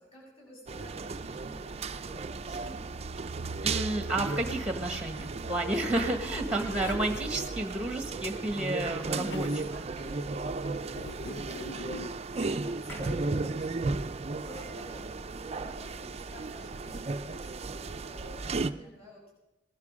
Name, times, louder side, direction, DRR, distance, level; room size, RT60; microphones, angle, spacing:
voice 1, 0.0-3.1 9.1-10.8 12.2-19.3, equal, 35° left, -4 dB, 7.1 m, -49 dB
sound 1, 0.7-18.7, right 3 dB, 35° right, 0.5 m, -35 dB
voice 2, 3.6-9.5, right 1 dB, 5° right, 6 dB, 1.3 m, -31 dB
Zipper (clothing), 6.8-7.3 8.5-9.5 10.9-12.2, left 3 dB, 65° left, 0.7 m, -43 dB
sound 2, 12.9-17.5, equal, 10° left, 1.9 m, -51 dB
19.5 x 12.0 x 5.1 m, 0.93 s
head